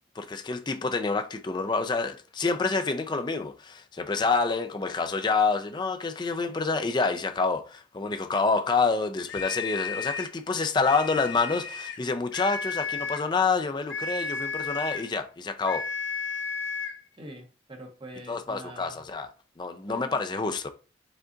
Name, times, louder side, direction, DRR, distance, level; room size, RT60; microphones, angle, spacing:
voice 1, 0.2-15.8 18.3-19.3 19.6-20.7, left 4 dB, 25° left, 0.4 m, -27 dB
sound 1, 9.3-10.4 10.8-12.0 12.3-13.3 13.9-15.1 15.6-17.0, left 5 dB, 85° left, 0.7 m, -33 dB
voice 2, 17.2-19.0 19.9-20.2, right 1 dB, 25° right, 0.9 m, -44 dB
5.0 x 2.4 x 3.8 m
head